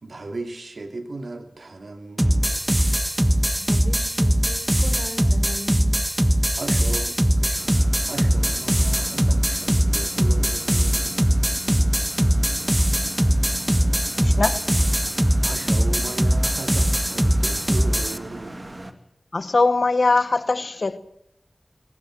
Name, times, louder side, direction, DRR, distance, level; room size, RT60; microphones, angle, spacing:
voice 1, 0.0-2.7 6.6-7.7 8.1-11.2 15.4-18.6, right 2 dB, 80° right, 2.7 m, -37 dB
sound 1, 2.2-18.2, equal, 10° right, 1.3 m, -21 dB
voice 2, 3.6-6.1 6.5-6.6, left 1 dB, 40° left, 4.0 m, -38 dB
sound 2, 7.6-18.9, right 1 dB, 35° right, 2.3 m, -38 dB
voice 3, 14.2-14.6 19.3-21.0, left 3 dB, 75° left, 1.1 m, -21 dB
22.5 x 20.0 x 7.6 m
wide cardioid pair, 55°, 0 cm